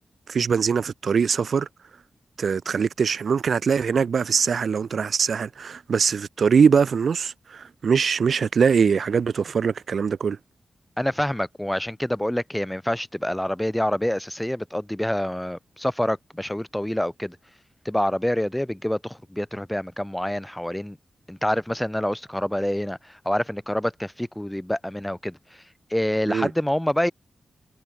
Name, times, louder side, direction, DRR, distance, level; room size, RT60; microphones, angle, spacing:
voice 1, 0.3-1.7 2.4-10.4 26.3-26.5, right 6 dB, 70° right, 0.5 m, -22 dB
voice 2, 11.0-17.4 17.8-21.0 21.3-25.6 25.9-27.1, left 1 dB, 5° left, 1.3 m, -27 dB
wide cardioid pair, 90°, 0 cm